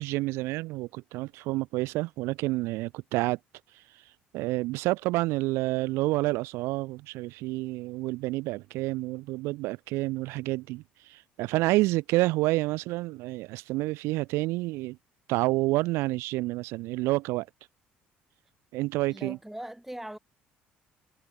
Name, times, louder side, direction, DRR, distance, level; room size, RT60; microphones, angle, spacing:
voice 1, 0.0-3.4 3.7-4.0 4.3-15.0 15.3-17.5 18.7-19.4, right 20 dB, 75° right, 0.4 m, -29 dB
voice 2, 19.1-20.2, right 1 dB, 5° right, 2.4 m, -40 dB
hypercardioid pair, 60°, 4 cm